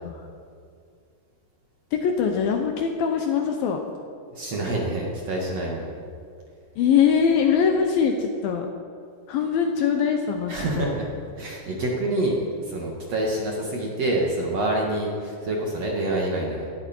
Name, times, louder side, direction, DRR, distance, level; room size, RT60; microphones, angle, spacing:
voice 1, 1.9-3.8 6.8-8.7 9.3-10.9, left 7 dB, 75° left, 4 dB, 2.4 m, -22 dB
voice 2, 4.3-5.9 10.5-11.1 11.4-16.7, right 1 dB, 50° right, -2 dB, 2.4 m, -27 dB
18.0 x 15.0 x 4.5 m, 2.3 s
omnidirectional pair, 4.9 m